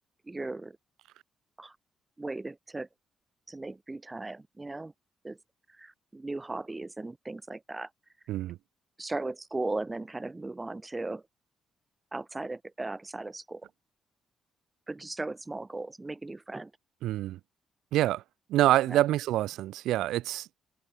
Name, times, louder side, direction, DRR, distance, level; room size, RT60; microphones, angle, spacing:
voice 1, 0.3-0.8 1.6-1.8 2.2-2.9 3.5-4.9 5.2-5.4 5.8-7.9 9.0-11.2 12.1-13.7 14.9-16.7 18.9-19.0, right 2 dB, 20° right, 0.9 m, -37 dB
voice 2, 17.0-17.4 17.9-18.2 18.5-20.6, right 14 dB, 70° right, 1.0 m, -26 dB
hypercardioid pair, 45°, 0 cm